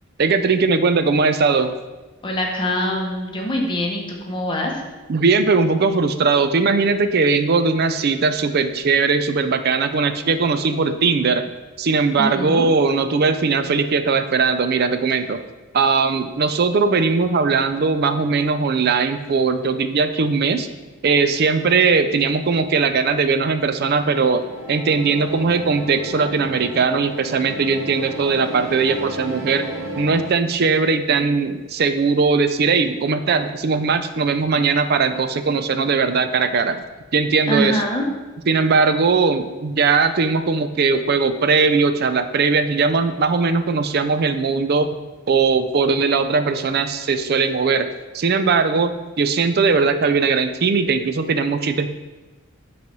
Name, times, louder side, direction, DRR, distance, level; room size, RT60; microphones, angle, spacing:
voice 1, 0.2-1.7 5.1-11.5 11.8-15.4 15.7-20.7 21.0-29.7 30.0-36.8 37.1-37.8 38.5-44.9 45.3-47.9 48.1-51.9, right 4 dB, 50° right, 9 dB, 0.4 m, -19 dB
voice 2, 2.2-4.7 12.2-12.7 37.5-38.0, equal, 25° left, 0 dB, 0.9 m, -24 dB
sound 1, 24.0-30.3, right 2 dB, 15° right, 1.1 m, -33 dB
7.3 x 3.2 x 5.3 m, 1.2 s
head